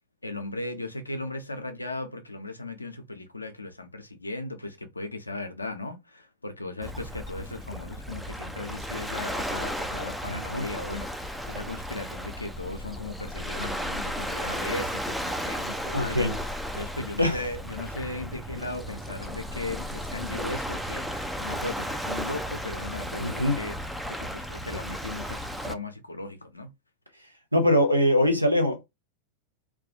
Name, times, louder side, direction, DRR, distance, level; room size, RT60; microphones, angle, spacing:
voice 1, 0.2-16.3 16.7-23.8 24.1-26.7, left 2 dB, 80° left, 0.4 m, -37 dB
Waves surf, 6.8-25.7, equal, ahead, 0.3 m, -34 dB
voice 2, 10.3-10.6 15.9-16.4 17.2-17.4 23.2-23.6 27.5-28.8, left 1 dB, 90° right, 0.6 m, -23 dB
2.3 x 2.2 x 2.6 m
figure-of-eight pair, 90°, 0 cm